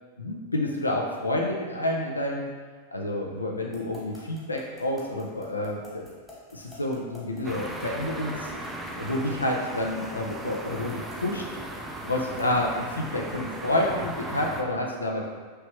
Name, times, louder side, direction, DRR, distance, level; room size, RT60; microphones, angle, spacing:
voice 1, 0.2-2.5 2.9-6.0 6.5-8.6 9.0-11.4 12.0-15.3, left 1 dB, 80° left, -1 dB, 0.4 m, -29 dB
sound 1, 3.7-12.6, left 2 dB, 5° left, 1.3 m, -49 dB
sound 2, 7.4-14.6, right 1 dB, 10° right, 0.3 m, -37 dB
3.1 x 3.1 x 2.9 m, 1.4 s
figure-of-eight pair, 90°, 0 cm